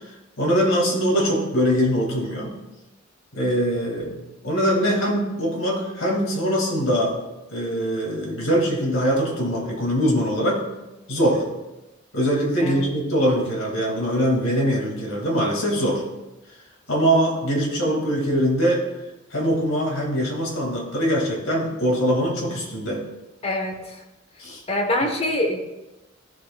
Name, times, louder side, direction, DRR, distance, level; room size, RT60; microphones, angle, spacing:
voice 1, 0.4-2.5 3.3-4.1 4.4-7.2 7.5-10.6 11.1-11.4 12.1-16.0 16.9-18.8 19.3-23.0 24.4-24.6, equal, 85° left, -1 dB, 2.4 m, -22 dB
voice 2, 23.4-24.0 24.7-25.6, left 1 dB, 30° left, 3 dB, 1.2 m, -25 dB
14.0 x 6.4 x 2.4 m, 1.0 s
head